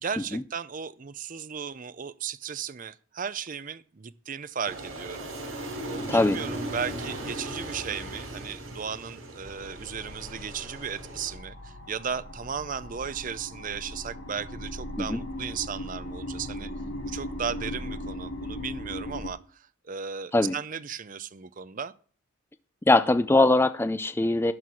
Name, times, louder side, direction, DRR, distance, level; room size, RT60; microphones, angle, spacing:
voice 1, 0.0-5.6 5.8-16.7 17.0-21.9, right 7 dB, 40° right, 0.5 m, -36 dB
Aircraft, 4.7-11.4, right 1 dB, 80° right, 5.3 m, -37 dB
voice 2, 6.1-6.4 15.0-15.2 20.3-20.5 22.9-24.5, left 2 dB, 10° left, 0.4 m, -21 dB
sound 1, 9.4-19.3, left 1 dB, 75° left, 4.9 m, -38 dB
12.0 x 4.7 x 8.4 m
head